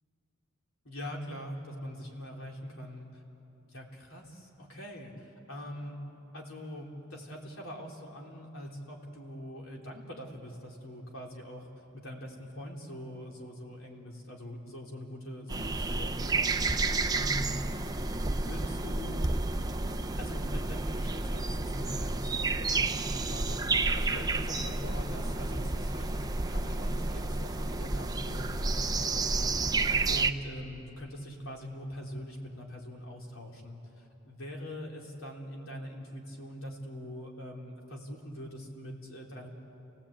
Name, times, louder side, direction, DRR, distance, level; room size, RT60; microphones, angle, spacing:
voice 1, 0.8-3.2 3.6-6.0 6.3-11.7 11.9-17.6 18.3-19.3 20.2-23.6 24.0-39.5, equal, 75° left, -1 dB, 3.6 m, -43 dB
sound 1, 15.5-30.3, right 3 dB, 20° right, 0.7 m, -30 dB
29.5 x 18.0 x 8.8 m, 3.0 s
head